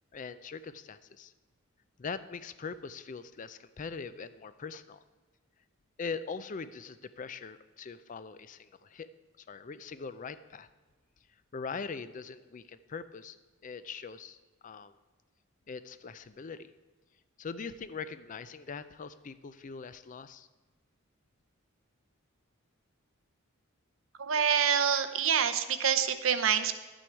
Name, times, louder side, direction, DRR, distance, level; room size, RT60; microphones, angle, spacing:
voice 1, 0.1-1.3 2.0-5.0 6.0-9.1 9.5-10.7 11.5-13.4 13.6-14.4 14.6-14.9 15.7-16.7 17.4-20.5, left 5 dB, 35° left, 14 dB, 0.4 m, -41 dB
voice 2, 24.2-26.8, right 8 dB, 65° right, 9 dB, 0.8 m, -26 dB
11.5 x 9.0 x 4.6 m, 1.3 s
head